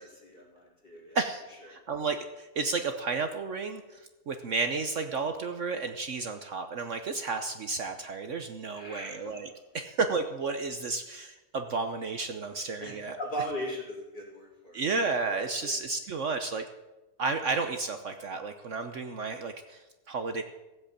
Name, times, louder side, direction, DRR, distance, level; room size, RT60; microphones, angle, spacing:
voice 1, 0.0-1.2 1.7-1.8 8.7-9.3 12.8-12.9 13.2-14.8 15.3-15.7, equal, 35° left, -4 dB, 4.7 m, -39 dB
voice 2, 1.1-13.2 14.7-16.6 17.2-20.4, right 4 dB, 55° right, 7 dB, 1.1 m, -32 dB
16.0 x 8.0 x 8.6 m, 1.0 s
omnidirectional pair, 1.6 m